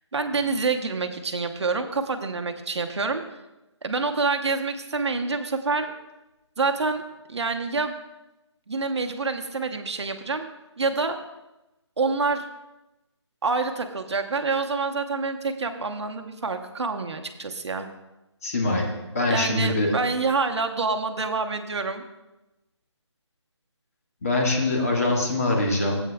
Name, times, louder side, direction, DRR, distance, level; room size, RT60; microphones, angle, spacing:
voice 1, 0.1-3.2 3.8-5.9 6.6-7.0 7.3-7.9 8.7-10.5 10.8-11.2 12.0-12.4 13.4-17.9 19.3-22.0, right 4 dB, 65° right, 5 dB, 1.0 m, -27 dB
voice 2, 18.4-18.9 19.1-19.9 24.2-26.0, left 2 dB, 30° left, 0 dB, 1.6 m, -23 dB
15.0 x 8.3 x 2.3 m, 0.99 s
hypercardioid pair, 170°, 15 cm